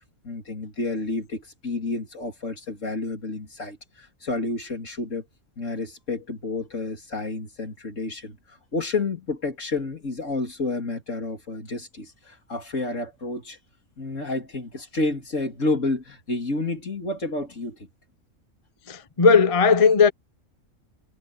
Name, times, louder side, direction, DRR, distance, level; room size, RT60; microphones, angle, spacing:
voice 1, 0.2-5.2 5.6-13.6 14.0-17.9, left 3 dB, 65° left, 3.5 m, -30 dB
voice 2, 18.9-20.1, left 5 dB, 30° left, 0.8 m, -17 dB
omnidirectional pair, 1.4 m